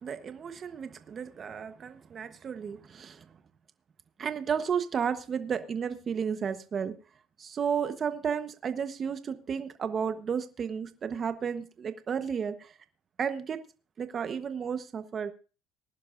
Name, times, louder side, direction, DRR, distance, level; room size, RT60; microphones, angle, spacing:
voice 1, 0.0-3.3 4.2-6.9 7.4-12.7 13.2-13.6 14.0-15.3, right 7 dB, 35° right, 10 dB, 1.1 m, -33 dB
20.0 x 11.0 x 2.6 m, 0.34 s
supercardioid pair, 105°, 0 cm